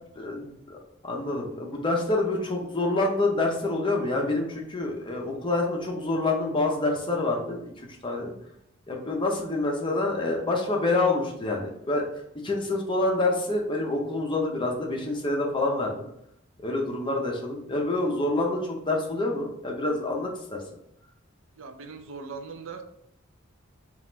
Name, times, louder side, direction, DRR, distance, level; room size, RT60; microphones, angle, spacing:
voice 1, 0.2-8.3 8.9-12.1 12.4-16.0 16.6-20.6, left 2 dB, 25° left, 0 dB, 0.7 m, -27 dB
voice 2, 21.6-22.8, right 4 dB, 70° right, 7 dB, 0.5 m, -40 dB
4.0 x 2.5 x 3.9 m, 0.75 s
head